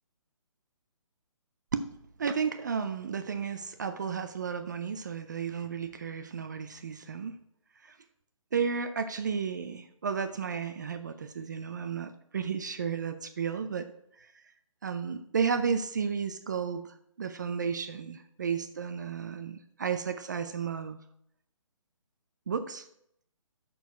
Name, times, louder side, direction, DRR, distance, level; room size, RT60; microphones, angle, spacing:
voice 1, 2.2-7.4 7.8-8.0 8.5-13.9 14.2-14.3 14.8-21.0 22.5-22.8, right 6 dB, 35° right, 9 dB, 0.4 m, -33 dB
6.2 x 4.6 x 5.7 m, 0.73 s
hypercardioid pair, 165°, 17 cm